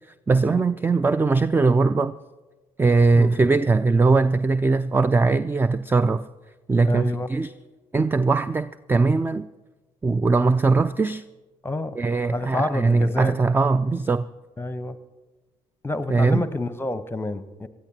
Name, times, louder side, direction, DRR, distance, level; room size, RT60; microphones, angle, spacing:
voice 1, 0.3-2.1 2.8-6.2 6.7-7.5 7.9-9.5 10.0-11.2 12.0-14.2 16.1-16.4, right 3 dB, 10° right, 15 dB, 0.4 m, -20 dB
voice 2, 6.8-7.3 11.6-12.0 12.3-13.3 14.6-15.0 15.8-17.7, left 2 dB, 10° left, 13 dB, 0.9 m, -28 dB
27.5 x 13.0 x 2.8 m, 1.2 s
figure-of-eight pair, 45°, 19 cm